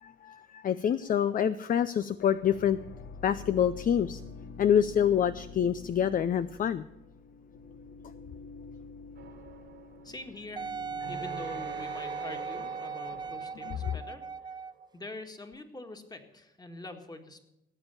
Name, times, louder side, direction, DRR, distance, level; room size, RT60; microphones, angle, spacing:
voice 1, 0.0-2.8 3.2-4.2 4.6-6.9 13.6-14.0, left 9 dB, 45° left, 13 dB, 0.5 m, -27 dB
sound 1, 2.2-14.1, left 4 dB, 65° left, 1.3 m, -48 dB
sound 2, 9.1-14.8, right 6 dB, 60° right, 1.8 m, -46 dB
voice 2, 10.0-10.7 11.1-14.5 14.9-17.4, left 2 dB, 20° left, 5 dB, 1.9 m, -44 dB
Wind instrument woodwind instrument, 10.6-14.9 15.5-15.6, right 5 dB, 20° right, 0.4 m, -38 dB
17.5 x 7.2 x 6.9 m, 0.91 s
cardioid pair, 90°, 20 cm